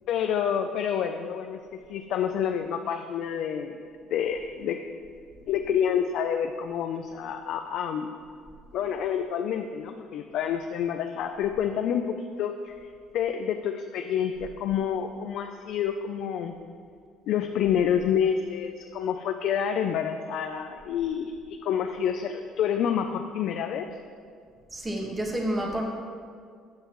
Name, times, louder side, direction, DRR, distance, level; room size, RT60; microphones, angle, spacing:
voice 1, 0.1-3.8 4.1-4.8 5.5-8.1 8.7-12.7 13.1-16.5 17.3-23.9, left 8 dB, 60° left, 5 dB, 0.5 m, -28 dB
voice 2, 24.7-25.8, right 1 dB, 15° right, -1 dB, 1.6 m, -29 dB
14.5 x 9.6 x 3.1 m, 2.1 s
cardioid pair, 150°, 0 cm